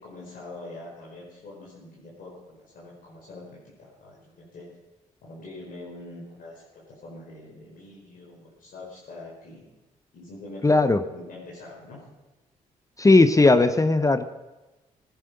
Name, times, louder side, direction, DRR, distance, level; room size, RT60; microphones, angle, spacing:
voice 1, 0.0-4.7 5.2-9.6 10.1-10.8 11.1-12.0, left 2 dB, 65° left, -5 dB, 4.7 m, -44 dB
voice 2, 10.6-11.0 13.0-14.2, left 2 dB, 20° left, 11 dB, 0.8 m, -17 dB
16.5 x 11.0 x 5.4 m, 1.1 s
supercardioid pair, 60°, 15 cm